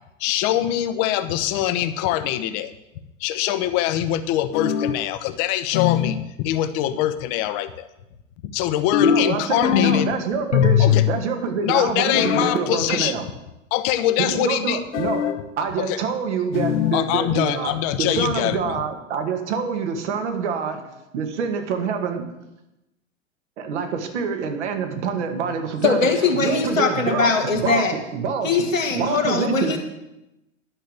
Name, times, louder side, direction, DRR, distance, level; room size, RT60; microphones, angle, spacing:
voice 1, 0.2-2.7 3.2-7.9 8.4-10.1 10.8-11.0 11.6-13.2 13.7-14.8 15.8-16.0 16.9-18.8, left 12 dB, 40° left, 11 dB, 1.0 m, -23 dB
sound 1, 4.5-5.1 5.7-6.3 8.9-10.1 10.5-11.2 12.1-12.6 14.9-15.4 16.5-17.0, left 9 dB, 65° left, 1.1 m, -20 dB
voice 2, 9.0-13.3 14.2-15.2 15.6-20.8 21.1-22.3 23.6-28.6 28.9-29.8, right 6 dB, 60° right, 5 dB, 2.2 m, -26 dB
voice 3, 25.8-27.9 28.4-29.8, left 4 dB, 85° left, 1 dB, 1.8 m, -21 dB
11.0 x 6.4 x 8.0 m, 0.92 s
figure-of-eight pair, 95°, 38 cm